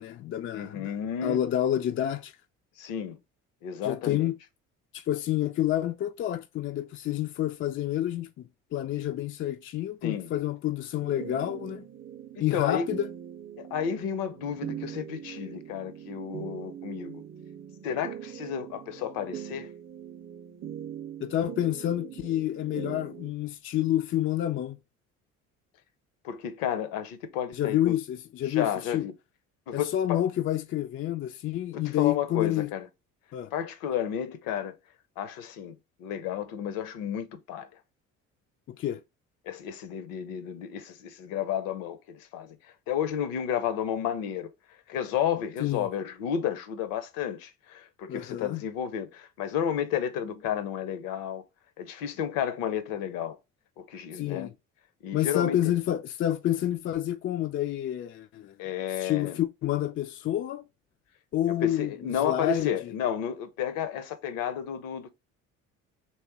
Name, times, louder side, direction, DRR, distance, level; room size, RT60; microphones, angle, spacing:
voice 1, 0.0-1.0 1.2-2.3 3.8-4.4 4.9-8.4 8.7-11.9 12.4-13.1 21.2-24.8 27.5-29.1 29.7-32.7 33.3-33.5 38.7-39.0 45.6-45.9 48.1-48.6 54.1-54.5 55.1-58.5 59.0-60.6 61.3-61.9 62.2-62.9, left 12 dB, 35° left, 0.4 m, -29 dB
voice 2, 0.5-1.4 2.8-3.2 3.6-4.3 10.0-10.3 12.5-12.9 13.6-17.2 17.8-19.7 26.2-27.9 28.5-29.1 29.7-30.2 31.7-32.9 33.5-34.8 35.2-35.7 36.0-37.7 39.5-42.6 42.9-44.5 44.9-51.4 51.8-53.4 53.8-54.5 55.0-55.7 58.6-59.4 61.6-65.1, left 9 dB, 60° left, 0.8 m, -32 dB
sound 1, 11.0-23.3, right 10 dB, 30° right, 0.7 m, -42 dB
3.1 x 3.1 x 4.4 m
figure-of-eight pair, 50°, 38 cm